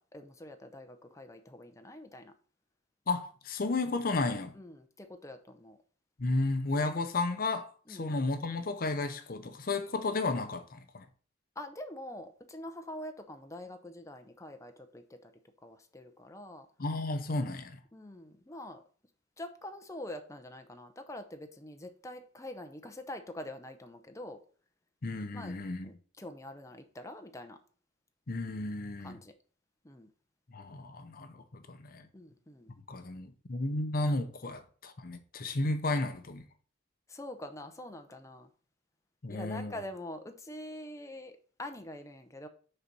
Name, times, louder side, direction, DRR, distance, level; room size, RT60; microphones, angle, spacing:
voice 1, 0.0-2.3 4.5-5.8 7.9-8.1 11.6-15.3 15.6-16.7 17.9-18.8 19.4-24.4 25.3-25.6 25.8-27.6 29.0-29.3 29.8-30.1 32.1-32.7 37.1-38.5 39.3-42.5, left 1 dB, 15° left, 0.8 m, -45 dB
voice 2, 3.1-4.5 6.2-11.1 16.8-17.8 25.0-25.9 28.3-29.2 30.5-32.1 32.9-36.4 39.2-39.7, left 2 dB, 50° left, 0.7 m, -33 dB
6.6 x 4.1 x 6.0 m
head